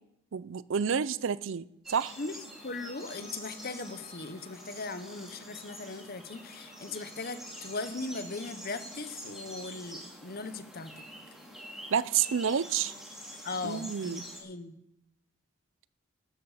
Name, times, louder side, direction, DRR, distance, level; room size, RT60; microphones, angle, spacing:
voice 1, 0.3-2.1 11.9-12.9 13.6-14.2, right 7 dB, 60° right, 18 dB, 0.4 m, -29 dB
sound 1, 1.8-14.4, equal, ahead, 2.7 m, -46 dB
Bowed string instrument, 2.5-8.1, left 3 dB, 25° left, 1.9 m, -58 dB
voice 2, 2.6-11.0 13.4-14.8, left 3 dB, 45° left, 11 dB, 0.9 m, -39 dB
13.0 x 12.5 x 4.9 m, 0.83 s
head